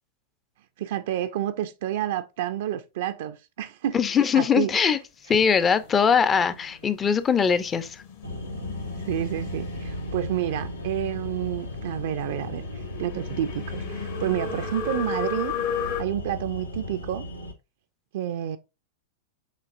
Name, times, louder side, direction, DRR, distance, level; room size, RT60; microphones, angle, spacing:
voice 1, 0.8-4.0 4.3-4.8 5.3-5.4 9.1-15.5 15.8-17.3 18.1-18.6, right 11 dB, 55° right, 0.3 m, -29 dB
voice 2, 3.9-5.0 5.3-8.0, left 6 dB, 20° left, 0.4 m, -21 dB
sound 1, 5.6-16.0, left 6 dB, 55° left, 1.0 m, -36 dB
sound 2, 8.2-17.5, left 1 dB, 80° left, 0.7 m, -36 dB
7.3 x 2.9 x 2.4 m
figure-of-eight pair, 95°, 0 cm